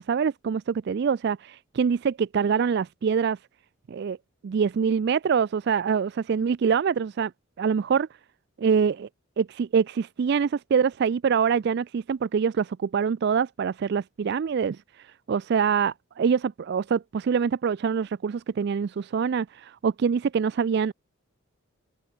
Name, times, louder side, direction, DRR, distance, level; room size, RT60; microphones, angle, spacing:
voice 1, 0.0-3.4 3.9-4.2 4.4-7.3 7.6-8.1 8.6-9.1 9.4-20.9, right 6 dB, 55° right, 0.3 m, -25 dB
open air
head